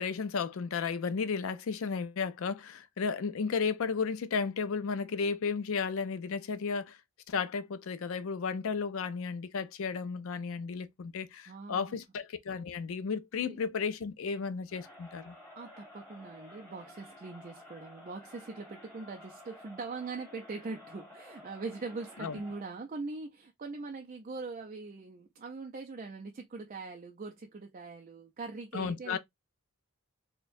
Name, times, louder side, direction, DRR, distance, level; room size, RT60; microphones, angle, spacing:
voice 1, 0.0-7.0 7.3-15.4 22.2-22.4 28.7-29.2, left 5 dB, 60° left, 0.4 m, -33 dB
voice 2, 11.5-11.9 13.5-13.6 15.6-29.2, right 3 dB, 35° right, 0.4 m, -42 dB
Crowd, 14.7-22.8, left 1 dB, 10° left, 1.4 m, -53 dB
4.3 x 2.2 x 2.5 m
head